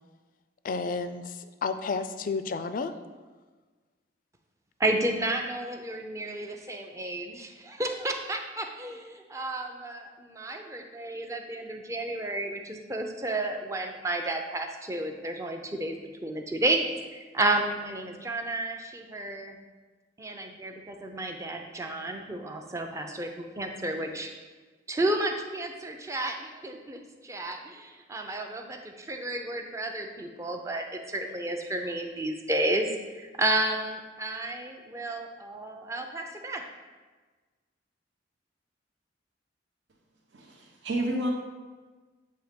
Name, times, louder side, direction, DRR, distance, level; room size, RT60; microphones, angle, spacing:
voice 1, 0.6-2.9, left 4 dB, 50° left, 11 dB, 0.3 m, -31 dB
voice 2, 4.8-16.0 16.2-16.8 17.1-19.6 20.2-24.3 24.9-32.9 33.1-36.6, right 2 dB, 15° right, 4 dB, 0.5 m, -32 dB
voice 3, 40.3-41.3, right 1 dB, 80° right, 0 dB, 0.9 m, -30 dB
7.7 x 2.8 x 5.0 m, 1.3 s
head